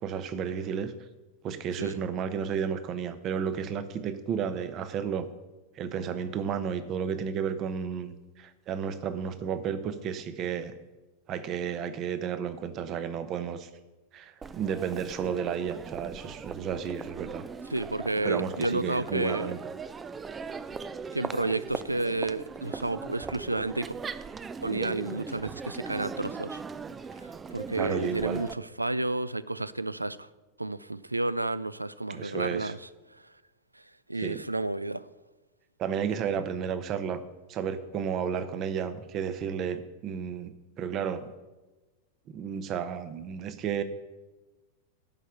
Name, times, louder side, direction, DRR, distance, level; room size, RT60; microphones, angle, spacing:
voice 1, 0.0-0.9 1.4-5.3 5.7-10.7 11.3-13.7 14.1-17.4 18.2-19.6 27.8-28.4 32.1-32.7 34.2-34.4 35.8-37.2 37.5-41.3 42.3-43.8, right 7 dB, 35° right, 12 dB, 0.9 m, -32 dB
Crowd, 14.4-28.5, right 5 dB, 20° right, 0.5 m, -39 dB
voice 2, 17.7-19.5 21.1-23.9 24.6-26.6 27.5-30.3 30.6-32.8 34.1-35.1, right 2 dB, 85° right, 18 dB, 0.4 m, -31 dB
11.0 x 5.6 x 7.9 m, 1.2 s
figure-of-eight pair, 90°, 0 cm